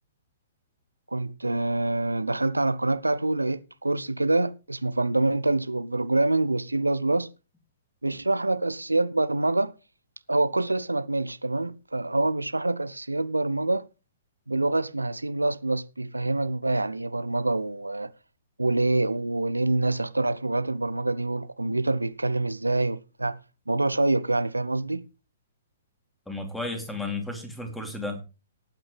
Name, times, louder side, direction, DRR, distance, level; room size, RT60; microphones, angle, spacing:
voice 1, 1.1-7.3 8.0-9.7 10.3-13.9 14.5-18.1 18.6-23.4 23.7-25.0, right 2 dB, 80° right, 0.6 m, -26 dB
voice 2, 26.3-28.2, left 2 dB, 5° left, 3.0 m, -33 dB
19.0 x 8.8 x 3.3 m
figure-of-eight pair, 115°, 0 cm